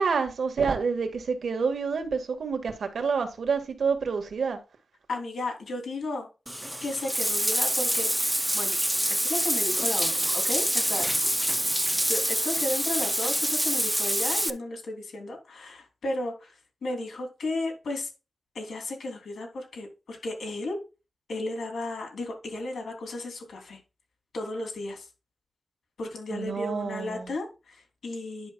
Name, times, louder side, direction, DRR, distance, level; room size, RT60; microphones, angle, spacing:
voice 1, 0.0-4.6 26.3-27.3, right 5 dB, 70° right, 1.7 m, -28 dB
voice 2, 5.1-6.3 6.8-8.1 8.5-8.8 9.1-11.3 12.1-16.5 16.8-18.1 18.5-20.8 21.3-23.8 24.3-25.1 26.0-28.5, left 2 dB, 80° left, 3.4 m, -34 dB
Bathtub (filling or washing), 6.5-14.5, equal, 5° right, 0.5 m, -26 dB
10.5 x 6.1 x 2.4 m
wide cardioid pair, 165°, 0 cm